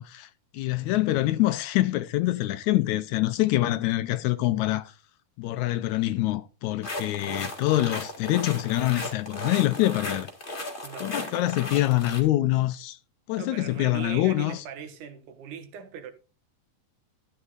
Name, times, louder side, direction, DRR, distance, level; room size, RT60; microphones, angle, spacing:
voice 1, 0.0-4.9 5.4-10.3 11.0-13.0 13.3-14.6, left 16 dB, 75° left, 1.9 m, -25 dB
sound 1, 6.8-12.2, left 2 dB, 25° left, 1.4 m, -36 dB
voice 2, 10.8-11.3 13.4-16.1, right 7 dB, 75° right, 2.8 m, -39 dB
13.0 x 9.7 x 2.5 m
omnidirectional pair, 3.6 m